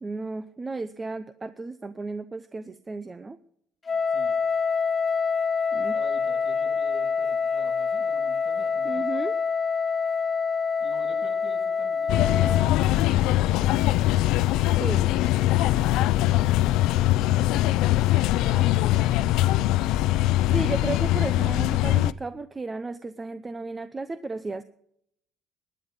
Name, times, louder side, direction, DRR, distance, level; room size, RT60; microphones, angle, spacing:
voice 1, 0.0-3.4 5.7-6.0 8.8-9.3 14.8-15.1 20.5-24.6, right 3 dB, 15° right, 12 dB, 0.6 m, -33 dB
Wind instrument woodwind instrument, 3.9-12.7, left 5 dB, 20° left, 1.4 m, -26 dB
voice 2, 3.9-4.4 5.9-9.1 10.8-12.5 13.2-13.9 14.9-17.6 18.2-19.7, right 2 dB, 45° right, 1 dB, 7.8 m, -47 dB
sound 1, 12.1-22.1, left 15 dB, 80° left, 0.5 m, -22 dB
21.0 x 9.7 x 5.2 m, 0.72 s
cardioid pair, 145°, 0 cm